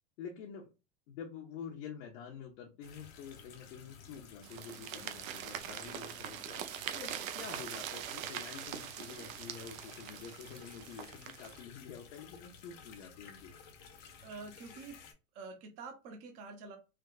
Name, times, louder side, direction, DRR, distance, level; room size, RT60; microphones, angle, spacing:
voice 1, 0.2-0.7 1.1-13.5, left 7 dB, 55° left, -1 dB, 0.8 m, -48 dB
sound 1, 2.8-15.1, left 6 dB, 35° left, 0.4 m, -55 dB
sound 2, 4.4-11.6, right 10 dB, 80° right, 0.6 m, -43 dB
voice 2, 14.2-15.0 15.3-16.8, right 4 dB, 30° right, 3 dB, 0.6 m, -47 dB
3.4 x 2.2 x 2.3 m, 0.28 s
supercardioid pair, 160°, 41 cm